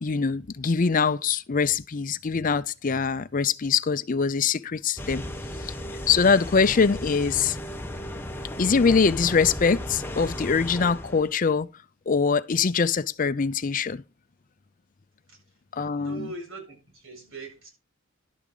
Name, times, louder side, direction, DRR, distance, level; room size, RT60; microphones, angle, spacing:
voice 1, 0.0-5.2 5.6-5.7 6.1-7.6 8.6-11.7 12.1-14.0 15.7-16.3, left 5 dB, 40° left, 0.5 m, -23 dB
sound 1, 5.0-11.3, equal, 10° left, 1.0 m, -35 dB
voice 2, 15.9-17.7, right 3 dB, 75° right, 7.4 m, -41 dB
11.5 x 9.2 x 3.8 m
head